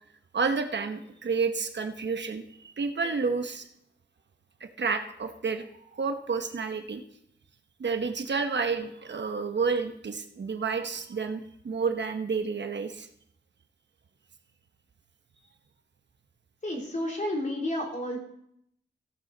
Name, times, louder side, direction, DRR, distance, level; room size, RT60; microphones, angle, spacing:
voice 1, 0.3-3.7 4.6-5.6 5.9-7.0 7.8-13.1, right 5 dB, 70° right, 7 dB, 1.0 m, -30 dB
voice 2, 16.6-18.2, left 1 dB, 40° left, -1 dB, 3.3 m, -31 dB
15.5 x 9.5 x 4.0 m, 0.73 s
wide cardioid pair, 90°, 19 cm